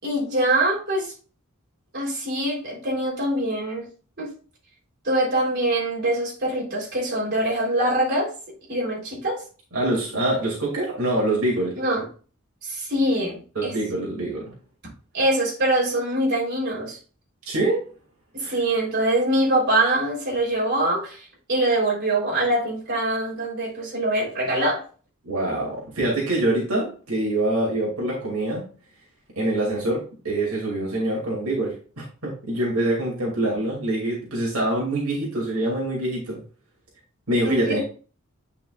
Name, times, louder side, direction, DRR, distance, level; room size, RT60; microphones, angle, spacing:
voice 1, 0.0-1.1 1.9-3.9 4.2-4.3 5.0-8.3 8.7-9.4 11.7-12.1 12.6-13.7 15.1-17.0 18.3-24.8 37.4-37.8, right 1 dB, 50° right, -3 dB, 3.7 m, -24 dB
voice 2, 9.7-11.8 13.6-14.5 17.5-17.8 18.4-18.6 25.3-28.7 29.4-36.4 37.3-37.8, right 1 dB, 85° right, -3 dB, 2.5 m, -25 dB
9.1 x 5.6 x 2.4 m, 0.37 s
head